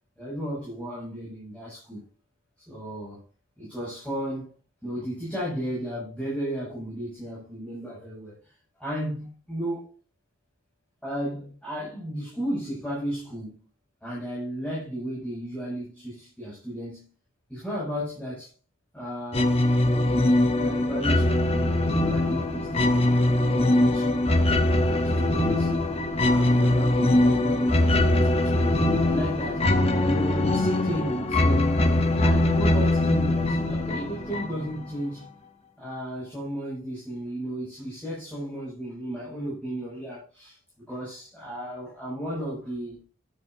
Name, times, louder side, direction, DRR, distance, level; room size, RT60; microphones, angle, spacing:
voice 1, 0.2-2.0 2.7-3.2 3.6-4.5 4.8-9.9 11.0-13.6 14.0-17.1 17.5-18.5 18.9-20.1 20.5-24.1 24.6-25.7 26.2-29.6 30.0-31.8 32.2-35.3 35.8-40.6 40.9-43.0, equal, 5° left, 6.8 m, -34 dB
sound 1, 19.3-34.8, left 1 dB, 30° left, 0.9 m, -22 dB
12.0 x 10.5 x 2.7 m
head